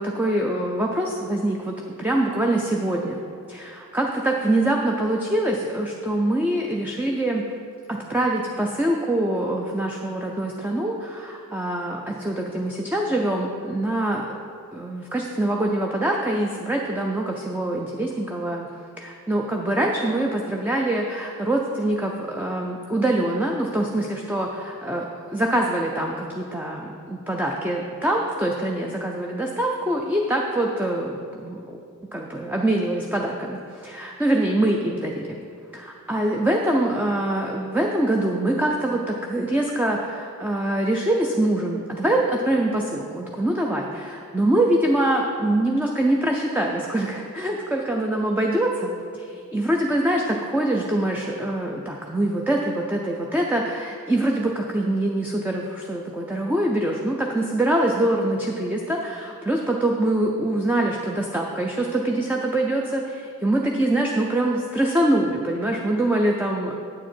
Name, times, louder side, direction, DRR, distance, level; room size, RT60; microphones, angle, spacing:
voice 1, 0.0-3.2 3.5-7.4 7.9-14.3 14.7-18.7 19.0-31.8 32.1-35.4 35.7-66.7, right 1 dB, 10° right, 0 dB, 0.4 m, -24 dB
8.8 x 7.4 x 4.4 m, 2.3 s
head